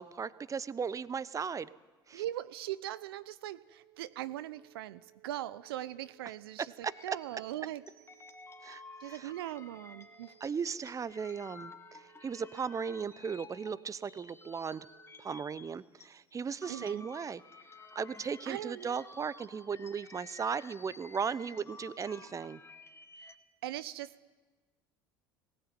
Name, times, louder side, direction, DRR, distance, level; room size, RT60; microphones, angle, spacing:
voice 1, 0.0-1.7 2.1-2.2 6.8-6.9 8.6-9.3 10.4-14.9 15.2-17.4 17.9-22.6, right 6 dB, 25° right, 18 dB, 0.8 m, -37 dB
voice 2, 2.1-7.8 9.0-10.3 16.7-17.1 18.5-19.0 23.6-24.3, right 13 dB, 75° right, 16 dB, 0.7 m, -40 dB
sound 1, 3.5-15.4, right 18 dB, 55° right, 3.4 m, -64 dB
sound 2, 6.8-16.1 16.4-23.3, left 3 dB, 20° left, 2.3 m, -53 dB
19.5 x 18.0 x 9.0 m, 1.3 s
hypercardioid pair, 70°, 13 cm